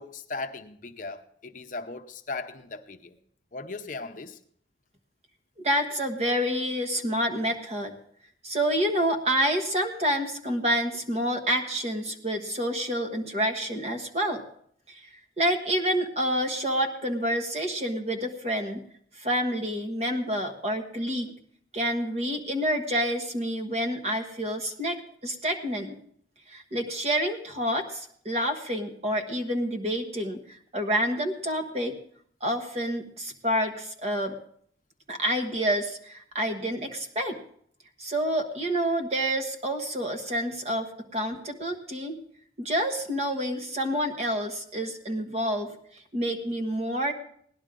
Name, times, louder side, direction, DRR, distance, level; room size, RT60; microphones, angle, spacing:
voice 1, 0.0-3.1 3.5-4.4, left 3 dB, 45° left, 0.7 m, -38 dB
voice 2, 5.6-7.9 8.4-14.4 14.9-15.0 15.4-18.8 19.2-21.3 21.7-26.0 26.5-30.4 30.7-31.9 32.4-34.3 35.1-37.4 38.0-42.2 42.6-45.7 46.1-47.1, equal, 35° right, 1.4 m, -28 dB
17.5 x 11.0 x 3.8 m
head